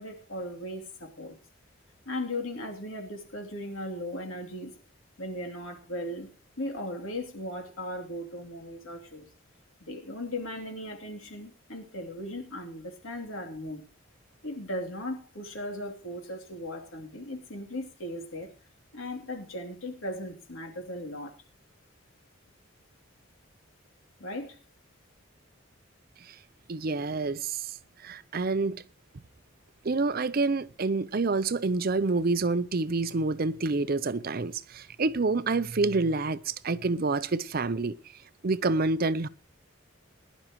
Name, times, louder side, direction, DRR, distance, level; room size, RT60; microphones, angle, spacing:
voice 1, 0.0-1.4 2.0-4.7 5.2-6.3 6.6-9.3 9.8-13.9 14.4-18.5 18.9-21.3 24.2-24.6, left 1 dB, 80° left, 3.0 m, -37 dB
voice 2, 26.7-27.8 28.0-28.8 29.8-38.0 38.4-39.3, right 3 dB, 45° right, 0.6 m, -28 dB
20.5 x 11.0 x 3.0 m
head